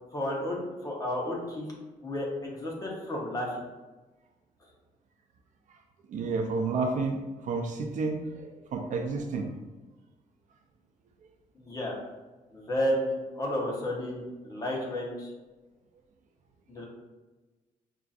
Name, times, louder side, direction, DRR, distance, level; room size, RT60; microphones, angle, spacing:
voice 1, 0.1-1.7 2.0-3.5 11.6-12.0 12.5-15.3 16.7-16.9, left 1 dB, 25° left, -2 dB, 0.8 m, -32 dB
voice 2, 6.1-9.5, right 3 dB, 65° right, 3 dB, 0.5 m, -31 dB
5.4 x 2.5 x 2.4 m, 1.2 s
wide cardioid pair, 155°, 14 cm